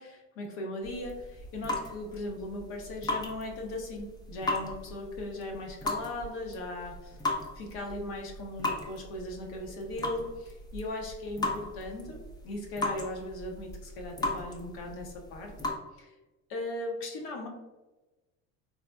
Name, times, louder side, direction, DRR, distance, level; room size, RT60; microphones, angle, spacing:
voice 1, 0.0-7.2 7.5-15.7 16.0-16.1 16.5-17.5, left 1 dB, 65° left, 1 dB, 0.9 m, -38 dB
sound 1, 0.8-15.8, left 2 dB, 10° left, 0.5 m, -37 dB
4.0 x 2.0 x 2.3 m, 1.1 s
supercardioid pair, 85°, 39 cm